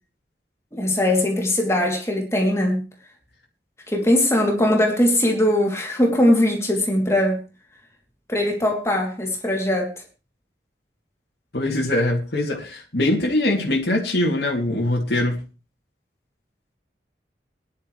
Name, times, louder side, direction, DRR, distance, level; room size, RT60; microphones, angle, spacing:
voice 1, 0.7-2.8 3.9-7.4 8.3-9.9, left 1 dB, 15° left, 3.0 m, -20 dB
voice 2, 11.5-15.4, left 1 dB, 70° left, 3.0 m, -22 dB
20.0 x 11.5 x 3.3 m
head